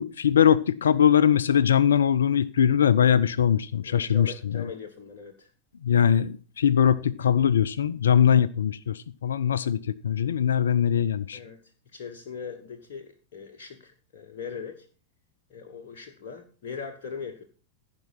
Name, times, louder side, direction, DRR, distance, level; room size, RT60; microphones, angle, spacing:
voice 1, 0.0-4.7 5.8-11.4, left 8 dB, 65° left, 19 dB, 0.4 m, -21 dB
voice 2, 3.8-5.5 11.3-14.9 15.5-17.4, left 6 dB, 50° left, 3 dB, 1.3 m, -40 dB
15.0 x 5.3 x 5.8 m, 0.39 s
figure-of-eight pair, 90°, 0 cm